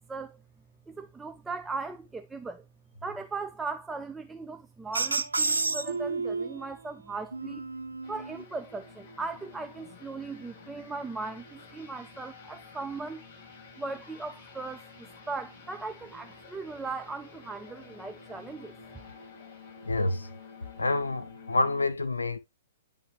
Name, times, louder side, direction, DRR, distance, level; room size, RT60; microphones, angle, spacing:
voice 1, 0.9-2.7 3.0-7.7 8.1-13.2 13.8-18.7, right 3 dB, 10° right, 0.5 m, -38 dB
sound 1, 4.9-6.7 7.3-8.4, right 3 dB, 90° right, 0.7 m, -30 dB
sound 2, 8.0-21.9, left 4 dB, 45° left, 5.4 m, -50 dB
voice 2, 19.8-20.3 20.8-22.4, left 2 dB, 90° left, 0.7 m, -28 dB
10.5 x 3.6 x 3.1 m
hypercardioid pair, 115°, 0 cm